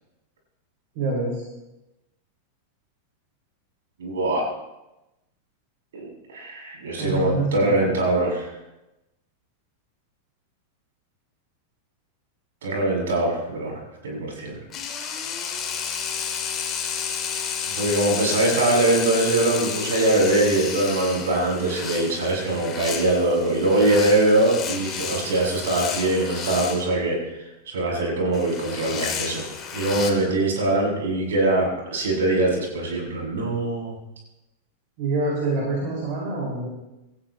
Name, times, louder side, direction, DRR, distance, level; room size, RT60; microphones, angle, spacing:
voice 1, 0.9-1.4 7.0-7.9 35.0-36.7, right 2 dB, 45° right, -3 dB, 5.8 m, -26 dB
voice 2, 4.0-4.5 5.9-8.5 12.6-14.6 17.7-29.4 29.7-33.9, right 2 dB, 60° right, -1 dB, 7.5 m, -22 dB
sound 1, 14.7-26.9 28.3-30.1, left 7 dB, 25° left, 3.0 m, -31 dB
28.5 x 15.0 x 3.2 m, 0.95 s
figure-of-eight pair, 90°, 0 cm